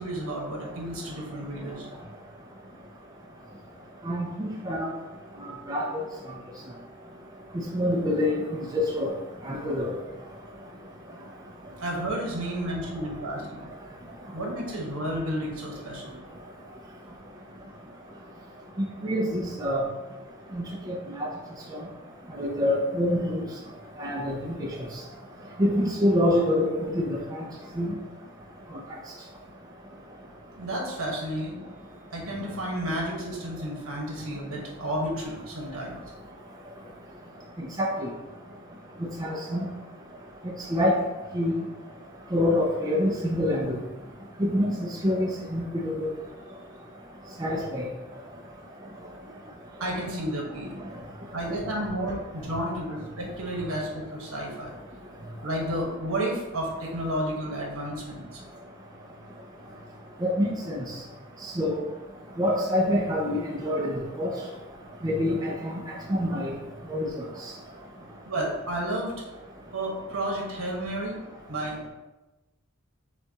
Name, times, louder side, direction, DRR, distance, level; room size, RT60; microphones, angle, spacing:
voice 1, 0.0-1.8 11.8-13.7 14.3-16.1 30.5-31.6 32.1-36.0 49.8-50.8 51.3-54.8 55.4-58.4 68.3-69.1 69.7-71.2 71.5-71.8, right 1 dB, 70° right, -2 dB, 1.2 m, -31 dB
voice 2, 4.1-4.9 5.7-5.9 7.7-8.3 8.7-9.1 9.4-9.9 19.0-19.8 20.5-21.3 22.3-23.4 24.0-24.7 25.6-27.4 27.8-27.9 37.8-38.1 39.2-39.6 40.7-41.0 41.3-41.6 42.3-43.8 44.4-46.1 47.4-47.9 60.2-60.8 61.6-61.8 62.4-63.9 64.2-64.3 65.0-65.8 66.1-66.5 66.9-67.1, left 1 dB, 15° right, -2 dB, 0.4 m, -26 dB
6.7 x 2.3 x 2.8 m, 1.1 s
head